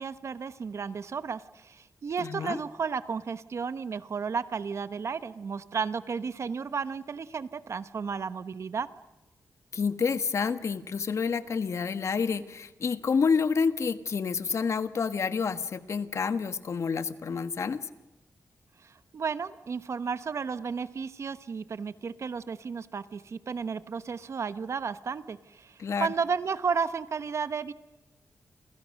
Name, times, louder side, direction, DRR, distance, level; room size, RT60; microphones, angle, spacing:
voice 1, 0.0-8.9 18.8-27.7, right 5 dB, 55° right, 13 dB, 1.1 m, -33 dB
voice 2, 2.2-2.6 9.7-17.9 25.8-26.1, left 5 dB, 60° left, 11 dB, 1.4 m, -28 dB
29.5 x 27.5 x 6.5 m, 0.99 s
wide cardioid pair, 100°, 6 cm